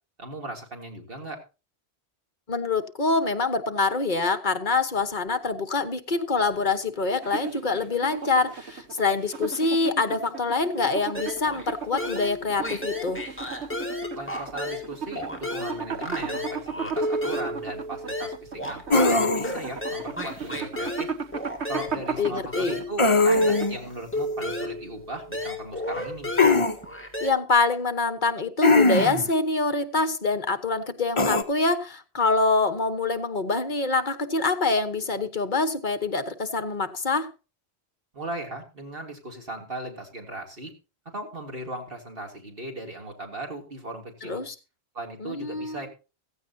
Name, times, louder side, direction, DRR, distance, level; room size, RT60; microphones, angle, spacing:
voice 1, 0.2-1.4 14.1-21.1 21.7-26.3 38.1-40.7 41.1-44.4 44.9-45.9, right 2 dB, 55° right, 3.4 m, -37 dB
voice 2, 2.5-13.2 22.2-22.8 27.2-37.3 44.2-44.5 45.2-45.9, left 3 dB, 45° left, 1.4 m, -25 dB
sound 1, 7.2-24.0, right 6 dB, 75° right, 1.6 m, -36 dB
sound 2, 11.1-11.7 12.0-14.9 15.1-23.7 24.1-27.3, left 1 dB, 10° left, 2.9 m, -33 dB
sound 3, 18.9-19.7 23.0-23.8 26.4-26.8 28.6-29.3 31.2-31.4, left 3 dB, 30° left, 1.0 m, -20 dB
15.5 x 15.0 x 2.8 m
omnidirectional pair, 1.1 m